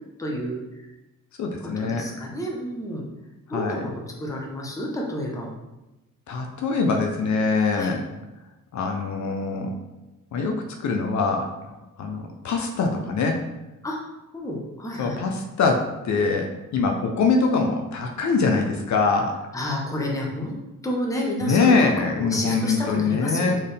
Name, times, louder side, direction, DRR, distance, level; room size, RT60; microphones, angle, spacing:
voice 1, 0.2-0.6 1.6-3.0 3.5-5.5 7.7-7.9 13.8-14.0 14.3-15.2 19.5-20.6 20.8-23.6, equal, 10° left, -1 dB, 0.7 m, -30 dB
voice 2, 1.4-2.1 3.5-3.8 6.3-8.0 8.7-9.7 10.3-13.4 15.0-19.3 21.4-23.6, left 4 dB, 60° left, 3 dB, 0.6 m, -23 dB
4.4 x 3.6 x 3.4 m, 1.0 s
wide cardioid pair, 150°, 33 cm